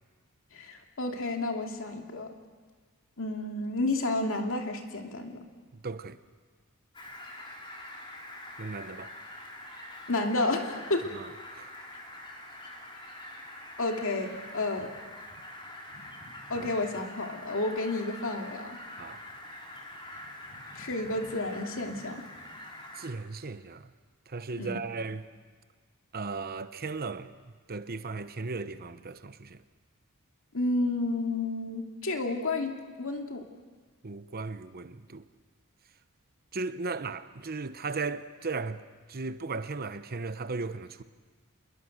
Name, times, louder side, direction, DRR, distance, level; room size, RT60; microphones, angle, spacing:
voice 1, 0.5-2.3 3.2-5.4 10.1-11.1 13.8-14.9 16.5-18.8 20.7-22.2 24.6-24.8 30.5-32.7 33.0-33.4, left 2 dB, 65° left, 2.6 m, -31 dB
voice 2, 5.7-6.2 8.6-9.1 11.1-11.8 16.5-16.7 19.0-19.2 22.9-23.9 24.3-25.3 26.1-27.3 27.7-29.6 34.0-35.3 36.5-38.8 39.1-41.0, right 4 dB, 45° right, 0.9 m, -36 dB
Fowl, 6.9-23.1, left 1 dB, 25° left, 3.9 m, -45 dB
27.5 x 21.5 x 6.6 m
head